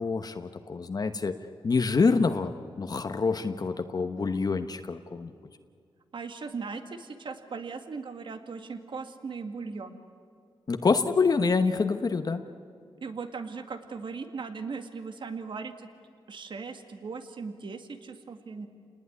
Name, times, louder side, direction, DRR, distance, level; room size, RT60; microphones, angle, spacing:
voice 1, 0.0-1.4 1.6-2.5 2.8-5.3 10.7-12.4, left 4 dB, 45° left, 7 dB, 1.1 m, -26 dB
voice 2, 6.1-10.0 13.0-15.9 16.3-18.7, right 4 dB, 60° right, 7 dB, 2.1 m, -38 dB
29.0 x 20.0 x 9.7 m, 2.4 s
wide cardioid pair, 95°, 9 cm